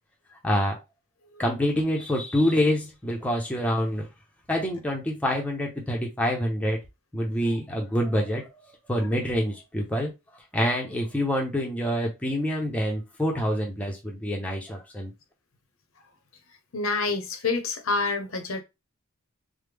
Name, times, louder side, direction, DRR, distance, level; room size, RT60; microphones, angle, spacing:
voice 1, 0.4-0.7 1.4-4.1 4.5-6.8 7.1-8.4 8.9-10.1 10.5-15.1, equal, 5° left, 0.6 m, -26 dB
voice 2, 16.7-18.6, left 3 dB, 65° left, 0.7 m, -27 dB
3.2 x 2.1 x 3.4 m
head